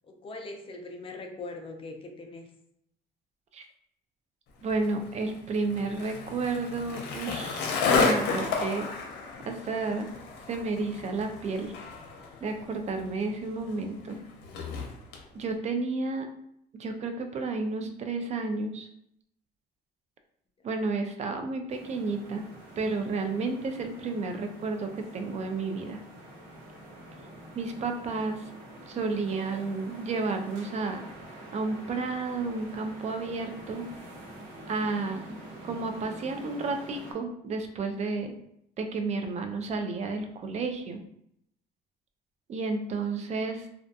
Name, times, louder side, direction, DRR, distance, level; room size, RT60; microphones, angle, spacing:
voice 1, 0.2-2.5, left 2 dB, 35° left, 3 dB, 0.4 m, -41 dB
voice 2, 4.6-8.9 9.5-10.1 10.5-11.7 12.4-14.2 15.3-16.3 16.7-18.9 20.6-22.4 22.8-26.0 27.5-28.4 28.9-31.0 31.5-33.9 34.7-35.4 35.6-38.3 38.8-41.0 42.5-43.7, right 3 dB, 40° right, 6 dB, 0.4 m, -31 dB
Skateboard, 4.7-15.2, left 4 dB, 80° left, 0.6 m, -32 dB
sound 1, 21.7-37.1, right 1 dB, 70° right, 0.9 m, -46 dB
2.3 x 2.2 x 2.6 m, 0.73 s
cardioid pair, 110°, 17 cm